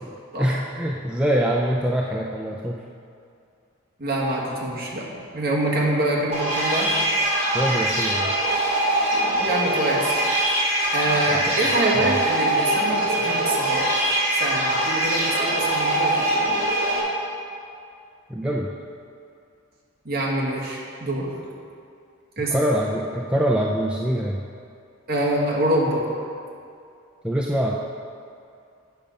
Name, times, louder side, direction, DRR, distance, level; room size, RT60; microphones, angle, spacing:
voice 1, 0.0-2.8 7.5-8.4 11.1-11.6 11.9-12.2 18.3-18.7 22.5-24.4 27.2-27.8, equal, 5° right, -3 dB, 0.4 m, -24 dB
voice 2, 4.0-6.9 9.4-10.1 10.9-13.9 14.4-16.5 20.0-21.3 22.4-22.5 25.1-26.0, right 1 dB, 45° right, -4 dB, 1.6 m, -25 dB
sound 1, 6.3-17.0, right 1 dB, 30° right, 2.1 m, -23 dB
8.7 x 6.5 x 5.2 m, 2.4 s
head